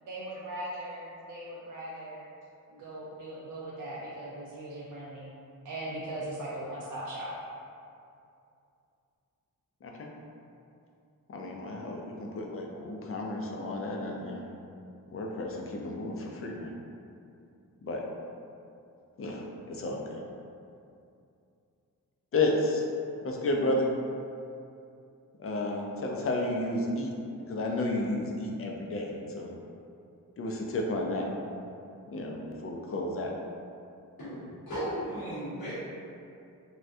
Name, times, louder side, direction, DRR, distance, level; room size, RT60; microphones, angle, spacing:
voice 1, 0.0-2.3 2.7-5.3 5.6-7.3, right 1 dB, 65° right, -6 dB, 0.5 m, -39 dB
voice 2, 11.3-14.5 15.1-16.7 17.8-18.0 19.2-20.2 22.3-22.8 23.2-23.9 25.4-27.1 27.5-29.5 30.4-31.3 32.1-33.3, left 2 dB, 40° left, 0 dB, 0.5 m, -32 dB
voice 3, 34.2-35.7, equal, 90° left, -10 dB, 1.3 m, -36 dB
3.4 x 2.2 x 2.6 m, 2.6 s
cardioid pair, 75°, 34 cm